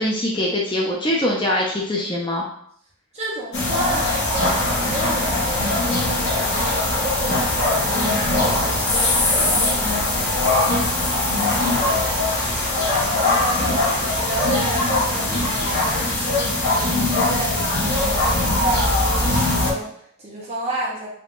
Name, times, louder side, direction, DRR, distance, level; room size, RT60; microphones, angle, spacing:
voice 1, 0.0-2.4 9.8-10.0, left 1 dB, 20° left, -2 dB, 0.5 m, -23 dB
voice 2, 3.1-12.1 12.4-21.1, right 1 dB, 30° right, -4 dB, 1.1 m, -31 dB
sound 1, 3.5-19.7, left 2 dB, 50° left, 1.3 m, -21 dB
3.6 x 2.8 x 3.7 m, 0.66 s
head